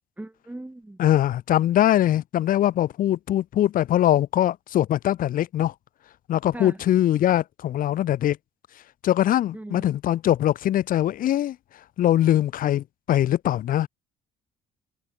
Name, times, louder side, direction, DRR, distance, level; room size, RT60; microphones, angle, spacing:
voice 1, 0.2-1.0 6.5-6.8 9.5-9.9, right 1 dB, 10° right, 6.8 m, -38 dB
voice 2, 1.0-5.7 6.3-8.4 9.0-11.6 12.0-13.9, left 12 dB, 55° left, 0.7 m, -22 dB
cardioid pair, 110°, 17 cm